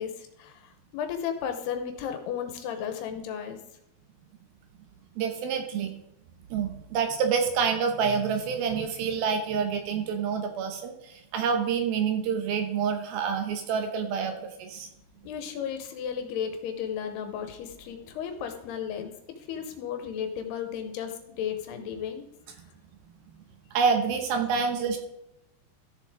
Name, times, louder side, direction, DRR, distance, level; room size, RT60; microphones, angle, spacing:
voice 1, 0.0-3.6 15.2-22.3, left 8 dB, 80° left, 6 dB, 2.8 m, -34 dB
voice 2, 5.2-5.9 6.5-14.9 23.7-25.0, right 6 dB, 75° right, 6 dB, 2.5 m, -27 dB
14.0 x 6.8 x 3.7 m, 0.82 s
omnidirectional pair, 4.9 m